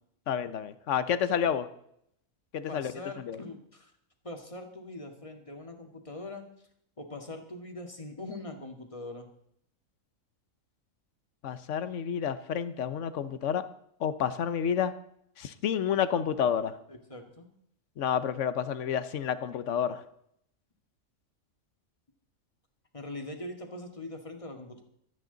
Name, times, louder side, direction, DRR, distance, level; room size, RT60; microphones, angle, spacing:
voice 1, 0.3-1.7 2.5-2.9 3.3-3.4 11.4-13.6 14.0-14.9 15.4-16.8 18.0-20.0, left 8 dB, 65° left, 13 dB, 1.2 m, -29 dB
voice 2, 2.7-3.9 4.2-6.4 7.0-9.3 16.9-17.5 22.9-24.8, left 2 dB, 25° left, 4 dB, 1.9 m, -42 dB
25.5 x 9.0 x 4.0 m, 0.72 s
omnidirectional pair, 1.4 m